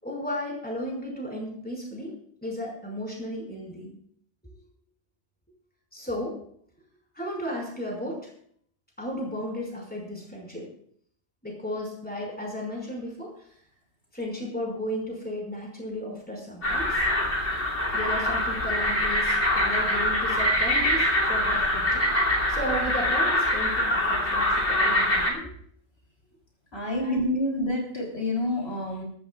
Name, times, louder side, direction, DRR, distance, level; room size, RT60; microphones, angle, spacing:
voice 1, 0.0-2.2 2.4-3.9 5.9-6.4 7.1-8.3 9.0-10.7 11.4-13.3 14.1-17.0 17.9-22.1 22.5-25.5 27.0-27.4, equal, 10° left, -1 dB, 5.3 m, -34 dB
sound 1, 16.6-25.3, left 1 dB, 80° left, 3.2 m, -24 dB
voice 2, 26.7-29.0, left 1 dB, 65° left, -1 dB, 3.6 m, -28 dB
21.5 x 14.0 x 2.4 m, 0.63 s
omnidirectional pair, 1.2 m